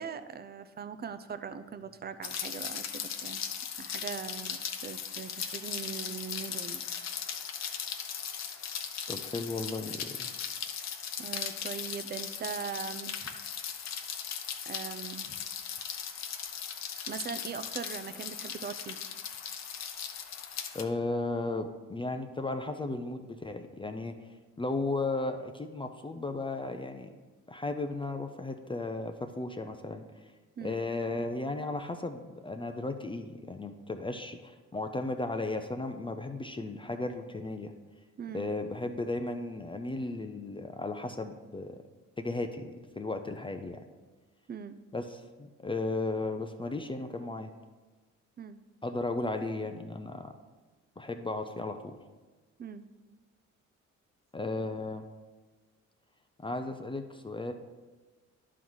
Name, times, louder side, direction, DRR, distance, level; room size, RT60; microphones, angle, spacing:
voice 1, 0.0-3.4 3.8-6.8 11.2-13.2 14.6-15.4 17.1-19.0 30.6-30.8 38.2-38.5 44.5-44.8 48.4-48.6 52.6-52.8, right 6 dB, 35° right, 11 dB, 0.5 m, -40 dB
Rain, 2.2-20.8, left 7 dB, 60° left, 0.8 m, -38 dB
voice 2, 9.1-10.3 20.7-24.1 24.6-27.1 27.5-30.0 30.6-37.7 38.3-41.7 42.2-42.7 43.0-43.8 44.9-47.5 48.8-50.3 51.0-51.9 54.3-55.0 56.4-57.5, left 2 dB, 15° left, 6 dB, 0.5 m, -35 dB
11.0 x 3.9 x 4.7 m, 1.3 s
cardioid pair, 90°, 30 cm